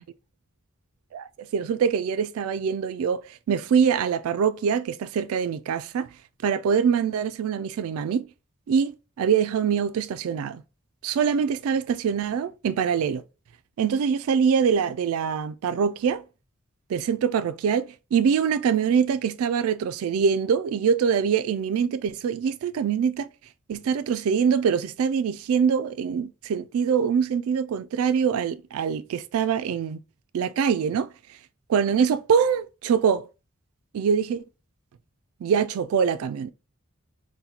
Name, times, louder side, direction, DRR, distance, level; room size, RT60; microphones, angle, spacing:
voice 1, 1.1-6.1 6.4-8.3 8.7-10.6 11.0-13.2 13.8-16.2 16.9-23.3 23.7-30.0 30.3-31.1 31.7-33.3 33.9-34.4 35.4-36.5, right 7 dB, 85° right, 0.3 m, -24 dB
4.2 x 2.1 x 3.9 m
head